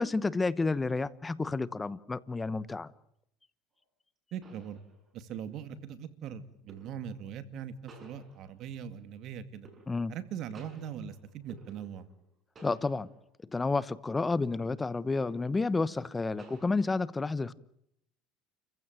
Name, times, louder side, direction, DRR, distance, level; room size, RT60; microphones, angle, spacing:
voice 1, 0.0-2.9 9.9-10.2 12.6-13.1 13.5-17.5, left 3 dB, 15° left, 18 dB, 1.0 m, -30 dB
sound 1, 3.8-3.9 4.4-5.4 6.7-7.2 7.9-8.8 9.6-10.3 10.5-12.3 12.6-13.3 13.7-13.9 15.2-15.7 16.4-16.9, right 2 dB, 30° right, 6.1 m, -56 dB
voice 2, 4.3-4.8 5.1-9.7 10.1-12.1, right 8 dB, 55° right, 11 dB, 2.3 m, -41 dB
30.0 x 15.5 x 9.1 m, 0.74 s
supercardioid pair, 115°, 0 cm